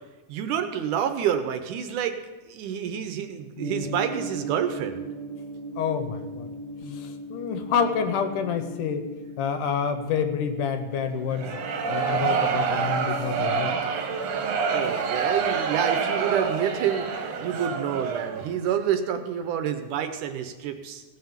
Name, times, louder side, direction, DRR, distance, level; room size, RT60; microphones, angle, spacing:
voice 1, 0.3-2.2 2.5-5.1 14.7-21.0, right 9 dB, 80° right, 8 dB, 2.1 m, -28 dB
Gong, 3.6-17.7, equal, 15° left, 2.0 m, -40 dB
voice 2, 5.8-6.5 6.9-9.1 9.4-11.6 11.9-13.7, left 6 dB, 75° left, 8 dB, 2.2 m, -28 dB
sound 1, 11.3-18.5, right 5 dB, 65° right, 1.9 m, -27 dB
17.0 x 5.8 x 7.2 m, 1.2 s
omnidirectional pair, 4.0 m